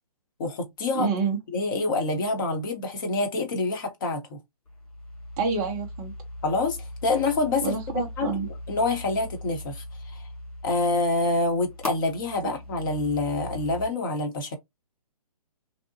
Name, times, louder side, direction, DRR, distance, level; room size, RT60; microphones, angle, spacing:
voice 1, 0.4-1.1 1.5-4.4 6.4-7.8 8.2-9.8 10.1-10.2 10.6-14.6, left 3 dB, 35° left, 0.8 m, -26 dB
voice 2, 0.9-1.4 5.4-6.1 7.6-8.5 12.4-12.5, right 5 dB, 10° right, 0.3 m, -28 dB
sound 1, 4.6-13.9, left 1 dB, 65° left, 1.2 m, -39 dB
2.7 x 2.1 x 2.7 m
figure-of-eight pair, 130°, 20 cm